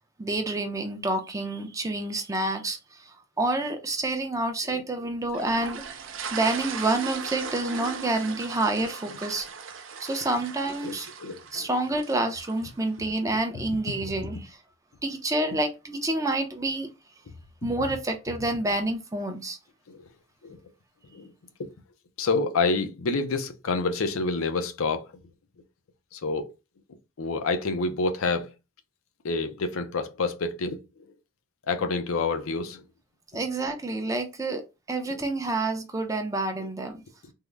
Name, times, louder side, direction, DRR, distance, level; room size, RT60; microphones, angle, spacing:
voice 1, 0.2-5.8 6.3-9.5 10.0-11.1 11.5-14.6 15.0-16.9 17.6-19.6 33.3-34.6 34.9-37.0, right 2 dB, 15° right, 0.5 m, -28 dB
sound 1, 5.3-12.6, right 5 dB, 65° right, 0.5 m, -38 dB
voice 2, 10.8-11.7 14.0-14.3 17.6-17.7 19.9-20.0 20.4-20.6 21.1-21.3 21.6-21.7 22.2-25.1 26.1-26.5 27.2-28.5 29.2-30.8 31.7-32.8 35.1-35.2 36.6-36.7, left 3 dB, 80° left, 0.5 m, -28 dB
3.6 x 2.1 x 3.1 m
head